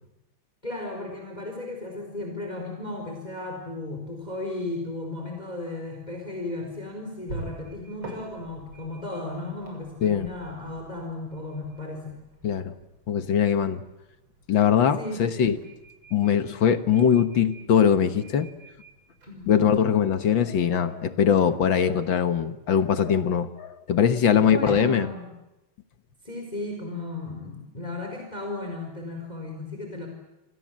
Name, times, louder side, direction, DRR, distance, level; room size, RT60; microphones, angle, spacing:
voice 1, 0.6-12.2 15.0-15.5 19.3-19.7 24.3-25.3 26.2-30.1, left 2 dB, 20° left, 2 dB, 4.7 m, -35 dB
sound 1, 6.3-20.4, right 2 dB, 65° right, 7.5 m, -47 dB
voice 2, 12.4-12.7 13.1-13.8 14.5-15.5 16.1-18.5 19.5-25.1, left 8 dB, 65° left, 10 dB, 2.0 m, -21 dB
28.5 x 26.0 x 7.5 m, 0.97 s
omnidirectional pair, 2.4 m